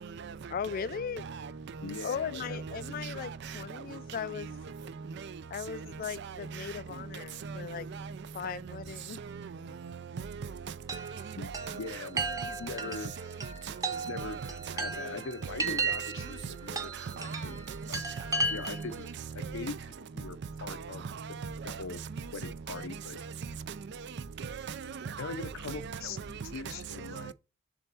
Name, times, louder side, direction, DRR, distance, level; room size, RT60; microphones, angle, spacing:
voice 1, 0.5-1.2 2.0-4.6 5.5-7.9 8.3-9.2, left 7 dB, 45° left, 0.3 m, -38 dB
voice 2, 1.2-1.5 2.5-3.5 5.2-5.3 6.5-6.6 7.4-7.6 7.9-8.1 9.4-9.5 9.8-9.9 10.2-10.3 10.9-11.1 12.2-12.4 12.7-12.8 14.2-14.3 15.4-15.5 16.7-16.8 17.2-17.8 18.3-18.8 19.4-19.7 20.7-20.8 21.4-21.8 22.2-22.3 24.4-25.4 25.7-26.0 27.2-27.3, right 5 dB, 55° right, 0.4 m, -39 dB
voice 3, 1.8-2.6 11.4-12.2 12.6-13.1 14.1-14.4 14.7-16.9 17.2-17.6 17.9-18.1 18.5-19.1 19.3-19.8 20.1-21.0 21.3-21.4 21.6-22.0 22.3-23.2 25.2-27.3, left 4 dB, 80° left, 0.7 m, -41 dB
Chime, 10.9-19.0, right 3 dB, 15° right, 0.9 m, -35 dB
6.9 x 3.5 x 4.1 m
head